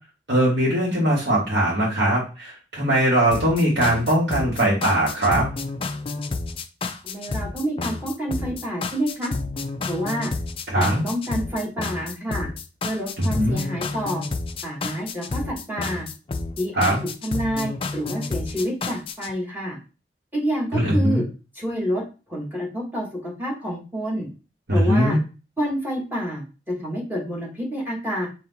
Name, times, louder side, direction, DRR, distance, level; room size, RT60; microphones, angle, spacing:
voice 1, 0.3-5.5 10.7-11.0 13.2-13.6 16.8-17.0 20.7-21.2 24.7-25.2, right 1 dB, 65° right, -6 dB, 1.5 m, -20 dB
sound 1, 3.3-19.3, left 3 dB, 30° left, 0.4 m, -30 dB
voice 2, 7.0-9.3 9.9-10.3 10.7-12.5 12.8-14.2 14.6-16.0 16.6-19.8 20.3-21.2 21.5-22.0 22.3-24.3 24.7-25.2 25.6-28.3, equal, 10° right, -3 dB, 1.3 m, -28 dB
4.2 x 2.7 x 4.0 m, 0.32 s
head